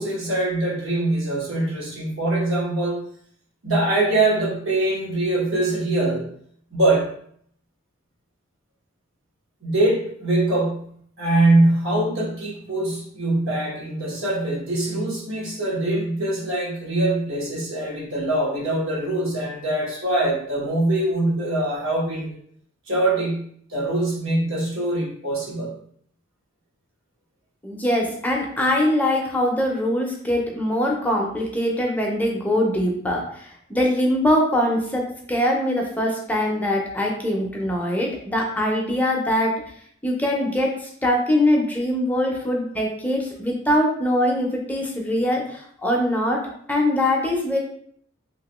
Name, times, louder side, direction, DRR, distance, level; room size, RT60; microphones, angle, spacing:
voice 1, 0.0-3.0 3.6-6.3 6.7-7.1 9.6-22.3 22.9-25.7, right 2 dB, 80° right, -4 dB, 1.2 m, -23 dB
voice 2, 27.6-39.5 40.0-46.4 46.7-47.6, left 1 dB, 10° left, -1 dB, 0.5 m, -22 dB
2.9 x 2.7 x 2.9 m, 0.63 s
head